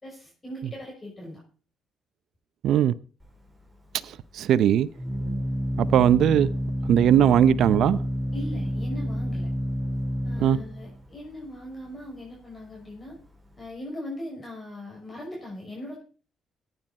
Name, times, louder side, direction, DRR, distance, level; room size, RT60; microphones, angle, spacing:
voice 1, 0.0-1.4 8.3-9.5 10.2-13.2 13.6-16.0, left 1 dB, 25° left, 6.4 m, -39 dB
voice 2, 2.6-2.9 4.0-4.9 5.8-6.5 6.9-8.0 10.4-10.6, right 10 dB, 75° right, 0.6 m, -19 dB
Organ, 3.2-13.7, equal, 10° right, 5.8 m, -30 dB
15.0 x 9.7 x 4.2 m
cardioid pair, 90°, 0 cm